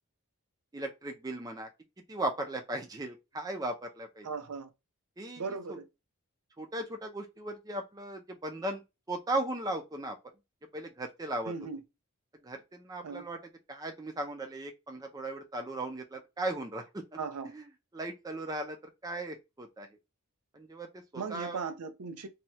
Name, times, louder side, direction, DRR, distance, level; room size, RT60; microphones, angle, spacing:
voice 1, 0.7-1.7 2.1-4.3 5.2-5.4 6.6-8.8 9.1-10.2 10.7-11.5 12.4-13.4 13.7-17.0 17.4-17.7 17.9-18.8 19.0-19.9 20.5-21.6, right 2 dB, 15° right, 0.4 m, -37 dB
voice 2, 4.2-4.7 5.4-5.9 11.5-11.8 13.0-13.3 17.2-17.5 21.2-22.3, right 4 dB, 85° right, 0.5 m, -37 dB
2.8 x 2.3 x 2.9 m
head